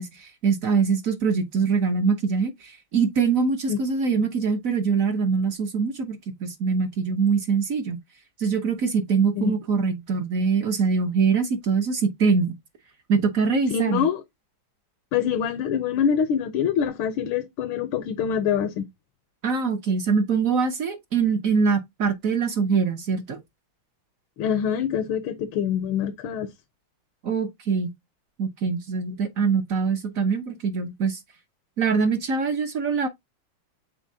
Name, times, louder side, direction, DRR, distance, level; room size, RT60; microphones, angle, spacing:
voice 1, 0.0-8.0 8.4-12.5 13.1-14.1 19.4-23.4 27.2-27.9 28.4-31.2 31.8-33.1, right 5 dB, 50° right, 1.1 m, -23 dB
voice 2, 13.7-14.2 15.1-18.8 24.4-26.5, left 8 dB, 80° left, 1.6 m, -25 dB
8.6 x 4.1 x 2.7 m
omnidirectional pair, 2.3 m